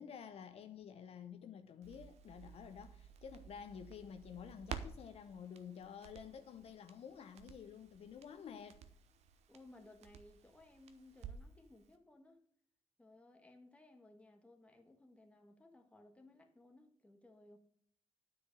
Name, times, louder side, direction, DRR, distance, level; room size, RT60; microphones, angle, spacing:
voice 1, 0.0-8.8, left 7 dB, 65° left, 0.8 m, -51 dB
Crackle, 1.8-11.6 11.9-12.0, right 7 dB, 85° right, 0.8 m, -53 dB
voice 2, 9.5-12.4 13.0-17.6, left 2 dB, 10° left, 1.5 m, -61 dB
9.5 x 4.9 x 6.5 m
cardioid pair, 100°, 11 cm